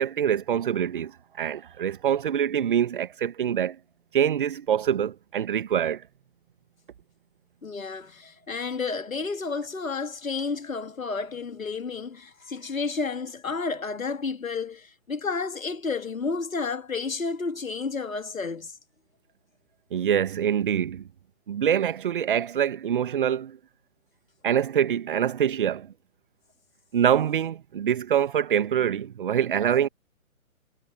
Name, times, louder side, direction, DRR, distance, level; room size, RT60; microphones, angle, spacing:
voice 1, 0.0-3.8 4.1-6.0 19.9-21.1 21.5-23.6 24.4-25.9 26.9-29.9, right 9 dB, 40° right, 1.4 m, -25 dB
voice 2, 7.6-18.7, left 4 dB, 70° left, 1.8 m, -31 dB
figure-of-eight pair, 135°, 42 cm